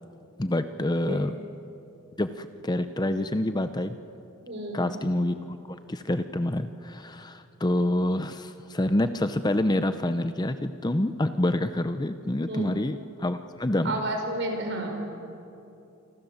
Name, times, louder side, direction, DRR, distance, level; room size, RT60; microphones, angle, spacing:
voice 1, 0.4-1.3 2.2-3.9 4.7-5.4 5.7-14.0, left 1 dB, 20° left, 10 dB, 0.7 m, -27 dB
voice 2, 4.4-5.0 12.4-12.7 13.8-14.9, right 1 dB, 55° right, 3 dB, 5.3 m, -31 dB
28.0 x 25.5 x 7.2 m, 2.8 s
head